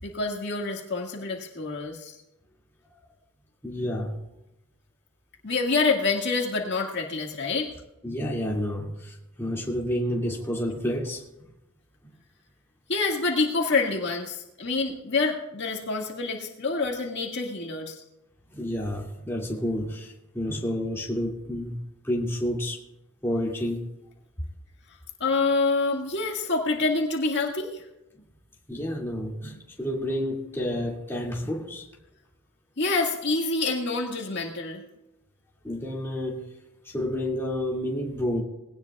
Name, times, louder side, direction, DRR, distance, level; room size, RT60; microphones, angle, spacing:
voice 1, 0.0-2.2 5.4-7.7 12.9-18.0 25.2-27.9 32.8-34.8, left 3 dB, 55° left, 0 dB, 1.9 m, -27 dB
voice 2, 3.6-4.2 8.0-11.2 18.5-22.8 23.2-23.8 28.7-31.9 35.6-36.5 36.8-38.4, left 1 dB, 10° left, -3 dB, 2.4 m, -30 dB
20.5 x 17.5 x 2.4 m, 0.93 s
head